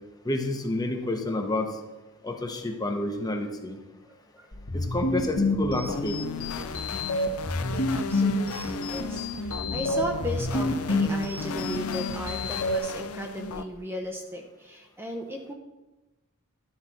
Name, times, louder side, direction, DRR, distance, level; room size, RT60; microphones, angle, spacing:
voice 1, 0.2-1.7 2.2-3.8 4.7-6.2, left 1 dB, 20° left, 3 dB, 0.9 m, -29 dB
sound 1, 4.5-12.8, left 2 dB, 65° left, 1.3 m, -29 dB
sound 2, 5.6-13.6, left 4 dB, 85° left, 0.5 m, -36 dB
voice 2, 7.7-15.5, equal, 10° right, 2 dB, 0.7 m, -36 dB
11.5 x 4.2 x 6.0 m, 1.1 s
head